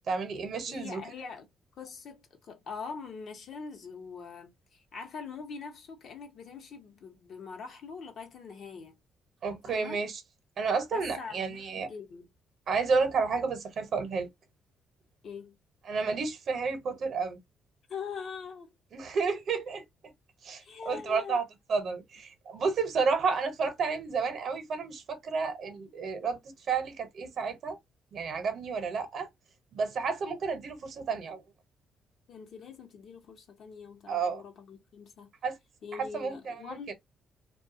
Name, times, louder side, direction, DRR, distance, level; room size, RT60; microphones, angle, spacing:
voice 1, 0.1-1.0 9.4-10.2 10.6-11.9 12.7-14.3 15.9-17.4 18.9-19.8 20.4-21.4 21.7-26.4 26.7-27.8 28.1-29.3 29.7-31.4 34.1-34.4 35.4-35.6 36.0-36.8, right 5 dB, 60° right, 0.8 m, -31 dB
voice 2, 0.7-1.5 1.8-9.0 9.6-10.0 10.9-12.3 15.2-15.6 17.9-18.7 20.6-21.4 32.3-35.3 35.8-36.9, left 5 dB, 65° left, 0.8 m, -43 dB
2.3 x 2.3 x 2.6 m
cardioid pair, 90°, 0 cm